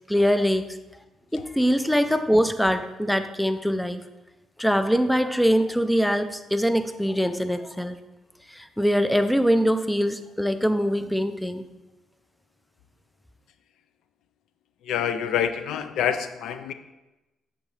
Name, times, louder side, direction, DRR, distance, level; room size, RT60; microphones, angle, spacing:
voice 1, 0.1-0.7 1.3-4.0 4.6-8.0 8.5-11.6, equal, 5° left, 9 dB, 0.4 m, -23 dB
voice 2, 14.8-16.7, left 9 dB, 80° left, 10 dB, 0.3 m, -26 dB
8.1 x 3.8 x 3.2 m, 1.1 s
cardioid pair, 90°, 0 cm